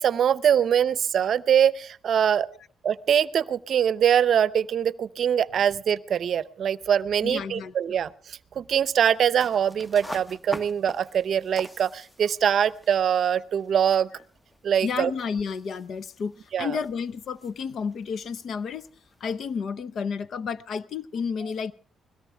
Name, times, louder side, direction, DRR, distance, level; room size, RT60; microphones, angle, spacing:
voice 1, 0.0-2.5 2.8-14.1 14.6-15.1 16.5-16.8, right 8 dB, 60° right, 0.6 m, -23 dB
voice 2, 7.2-7.7 14.8-18.9 19.2-21.7, left 6 dB, 60° left, 0.7 m, -31 dB
sound 1, 9.0-19.6, left 1 dB, 10° left, 0.9 m, -45 dB
21.5 x 17.0 x 3.4 m
cardioid pair, 90°, 0 cm